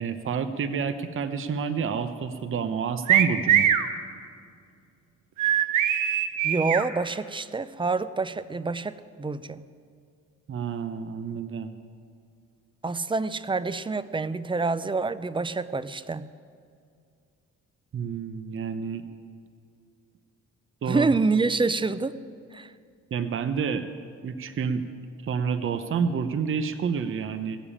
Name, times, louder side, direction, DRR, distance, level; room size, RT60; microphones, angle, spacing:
voice 1, 0.0-3.7 10.5-11.7 17.9-19.0 20.8-21.1 23.1-23.9 24.2-24.8 25.2-27.6, right 6 dB, 45° right, 9 dB, 0.8 m, -29 dB
sound 1, 3.1-3.9 5.4-6.9, right 10 dB, 85° right, 0.9 m, -21 dB
voice 2, 6.4-9.6 12.8-16.3 20.9-22.2 22.5-22.7, right 3 dB, 15° right, 15 dB, 0.5 m, -27 dB
17.0 x 7.1 x 8.6 m, 2.3 s
cardioid pair, 90°, 30 cm